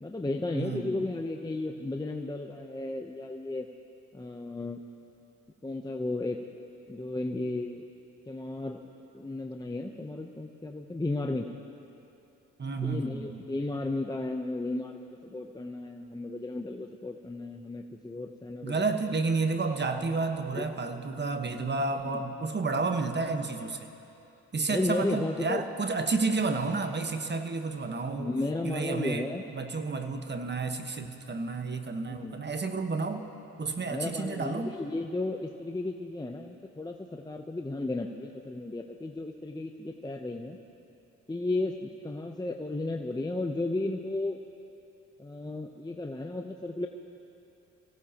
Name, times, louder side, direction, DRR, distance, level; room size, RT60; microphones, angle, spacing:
voice 1, 0.0-3.7 4.1-4.8 5.6-6.4 6.9-7.8 8.3-8.8 9.1-11.5 12.8-18.8 20.5-20.7 22.1-22.2 24.7-25.6 28.2-29.4 32.1-32.3 33.9-40.6 41.3-44.4 45.2-46.9, left 2 dB, 10° left, 3 dB, 0.8 m, -34 dB
voice 2, 0.5-1.0 12.6-13.4 18.6-23.9 24.5-28.3 28.6-33.2 33.6-34.7, right 3 dB, 30° right, 6 dB, 1.3 m, -31 dB
25.0 x 16.5 x 3.0 m, 2.8 s
supercardioid pair, 65°, 33 cm